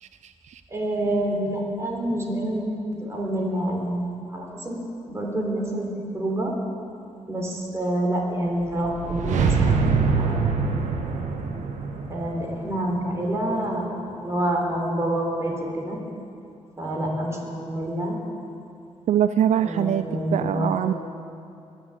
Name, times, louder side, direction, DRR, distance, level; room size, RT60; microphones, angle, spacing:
voice 1, 0.0-0.6 19.1-20.0 20.3-20.9, right 10 dB, 70° right, 11 dB, 0.4 m, -23 dB
voice 2, 0.7-4.8 5.1-5.9 6.1-6.5 7.3-9.8 10.2-10.8 12.1-16.0 16.8-18.2 19.6-20.9, right 1 dB, 25° right, -1 dB, 3.8 m, -27 dB
sound 1, 8.5-13.7, right 4 dB, 90° right, 1.4 m, -25 dB
21.5 x 7.3 x 8.2 m, 2.5 s
cardioid pair, 105°, 12 cm